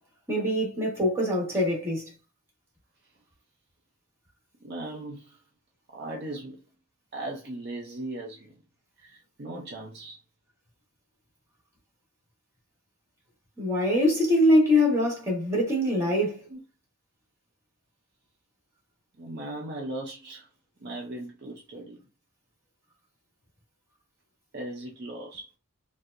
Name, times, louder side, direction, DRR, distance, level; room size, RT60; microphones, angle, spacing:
voice 1, 0.3-2.0 13.6-16.5, left 1 dB, 10° right, 1.2 m, -23 dB
voice 2, 4.6-5.4 5.9-6.6 7.1-8.6 9.0-10.2 16.5-16.6 19.2-20.5 20.8-22.0 24.5-25.5, right 1 dB, 45° right, 0.5 m, -38 dB
4.3 x 2.1 x 2.5 m
head